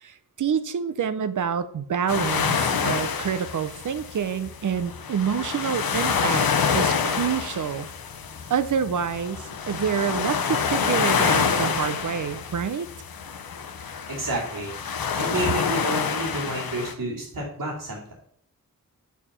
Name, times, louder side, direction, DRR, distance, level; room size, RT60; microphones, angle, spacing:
voice 1, 0.0-6.5 6.7-7.9 8.5-12.9, right 7 dB, 60° right, 13 dB, 0.6 m, -27 dB
sound 1, 2.1-16.9, left 6 dB, 85° left, 0.8 m, -27 dB
voice 2, 14.1-14.7 15.2-18.1, right 2 dB, 85° right, -9 dB, 2.7 m, -30 dB
6.9 x 4.7 x 5.5 m, 0.70 s
wide cardioid pair, 100°, 35 cm